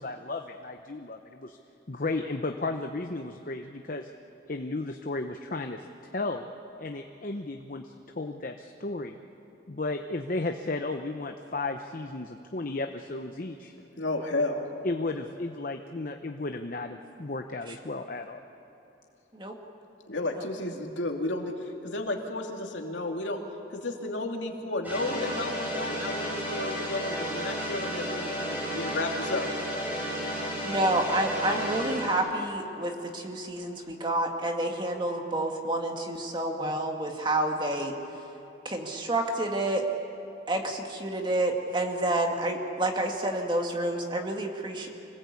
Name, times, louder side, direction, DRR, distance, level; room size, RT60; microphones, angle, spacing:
voice 1, 0.0-1.6 1.9-4.1 4.5-5.8 6.1-6.5 6.8-7.8 8.2-9.2 9.7-13.7 14.8-18.4, left 2 dB, 50° left, 5 dB, 0.8 m, -34 dB
voice 2, 14.0-14.6 20.1-23.4 23.7-29.5, left 2 dB, 90° left, 1 dB, 2.7 m, -32 dB
sound 1, 24.8-32.2, equal, 10° right, 6.7 m, -33 dB
voice 3, 30.6-37.9 38.6-39.8 40.5-44.9, right 1 dB, 25° right, 2 dB, 2.1 m, -29 dB
26.0 x 19.0 x 8.4 m, 2.9 s
head